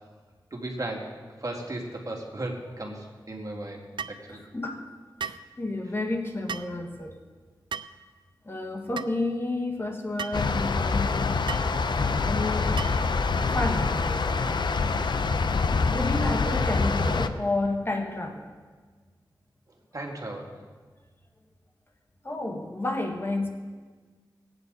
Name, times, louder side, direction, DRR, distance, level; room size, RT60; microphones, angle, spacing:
voice 1, 0.5-1.1 1.4-3.8 4.1-4.4 19.9-20.5, right 1 dB, 45° right, 0 dB, 2.4 m, -35 dB
sound 1, 4.0-4.2 5.2-5.5 6.5-6.7 7.7-8.0 9.0-9.1 10.2-10.4 11.5-11.7 12.8-13.1, right 7 dB, 80° right, 0.4 m, -35 dB
voice 2, 4.3-4.9 5.2-7.2 8.4-11.4 12.2-12.8 13.5-14.7 15.9-18.5 22.2-23.5, left 2 dB, 30° left, 2 dB, 1.6 m, -31 dB
sound 2, 10.3-17.3, left 4 dB, 65° left, 0.6 m, -25 dB
19.5 x 9.0 x 4.0 m, 1.5 s
cardioid pair, 50°, 8 cm